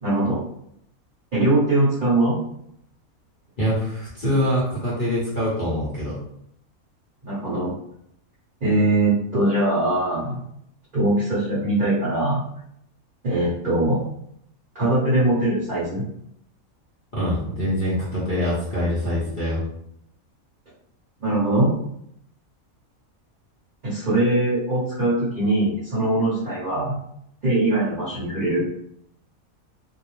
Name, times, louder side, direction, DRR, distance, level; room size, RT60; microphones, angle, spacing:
voice 1, 0.0-0.4 1.3-2.4 7.2-7.7 8.6-10.4 10.9-12.4 13.2-14.0 14.7-16.0 21.2-21.7 23.8-27.0 27.4-28.6, right 1 dB, 35° right, -11 dB, 1.1 m, -21 dB
voice 2, 3.6-6.2 17.1-19.6, equal, 40° left, -8 dB, 0.8 m, -24 dB
2.7 x 2.0 x 3.1 m, 0.73 s
omnidirectional pair, 1.6 m